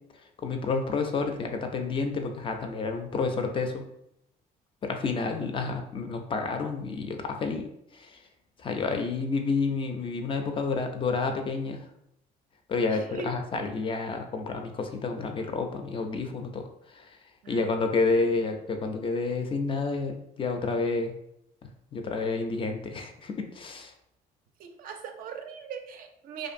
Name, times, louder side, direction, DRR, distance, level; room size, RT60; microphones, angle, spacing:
voice 1, 0.4-3.8 4.8-8.2 8.6-11.8 12.7-17.2 17.5-21.1 21.9-23.9, left 4 dB, 30° left, 5 dB, 0.3 m, -30 dB
voice 2, 12.9-13.3 17.4-17.8 24.6-26.5, right 6 dB, 60° right, 6 dB, 0.4 m, -40 dB
2.5 x 2.5 x 2.5 m, 0.78 s
cardioid pair, 110°, 17 cm